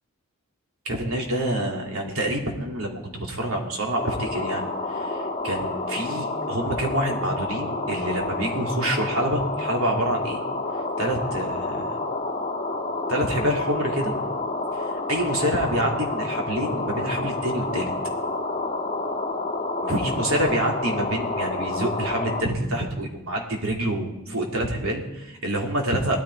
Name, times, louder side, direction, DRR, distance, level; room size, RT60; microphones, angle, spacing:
voice 1, 0.8-10.4 11.0-12.2 13.1-14.2 14.7-17.9 19.8-26.2, right 1 dB, 85° right, 0 dB, 3.0 m, -27 dB
sound 1, 4.0-22.4, left 2 dB, 30° left, 1.7 m, -29 dB
19.0 x 13.5 x 4.8 m, 0.94 s
head